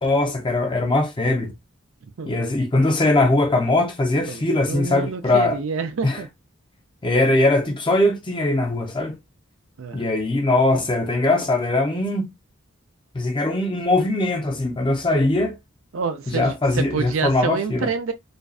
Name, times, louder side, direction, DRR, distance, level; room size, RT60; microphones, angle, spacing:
voice 1, 0.0-1.5 2.3-5.6 6.0-6.2 7.0-9.2 9.9-12.3 13.1-15.6 16.3-17.9, left 2 dB, 25° left, 0.5 m, -21 dB
voice 2, 4.3-6.3 9.8-10.2 15.9-18.1, right 5 dB, 75° right, 0.5 m, -27 dB
2.5 x 2.3 x 2.3 m
head